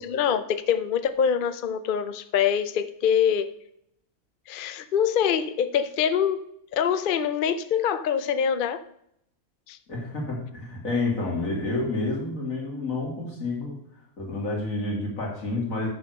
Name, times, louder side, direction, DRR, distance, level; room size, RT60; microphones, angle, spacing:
voice 1, 0.0-3.5 4.5-6.5 6.7-8.8 9.7-9.8, left 8 dB, 55° left, 12 dB, 0.6 m, -24 dB
voice 2, 9.9-13.8 14.2-15.9, left 2 dB, 70° left, -2 dB, 2.9 m, -29 dB
6.8 x 6.1 x 6.4 m, 0.73 s
omnidirectional pair, 1.5 m